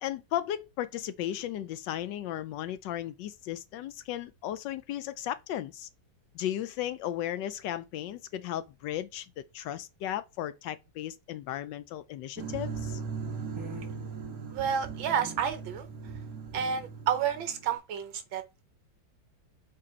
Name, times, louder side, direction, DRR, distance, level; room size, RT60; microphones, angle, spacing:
voice 1, 0.0-5.9 6.3-13.0, left 12 dB, 75° left, 1.1 m, -35 dB
sound 1, 12.4-17.8, right 5 dB, 50° right, 1.6 m, -39 dB
voice 2, 14.5-15.9 16.5-18.6, right 8 dB, 75° right, 1.7 m, -30 dB
6.6 x 3.6 x 4.3 m
omnidirectional pair, 2.2 m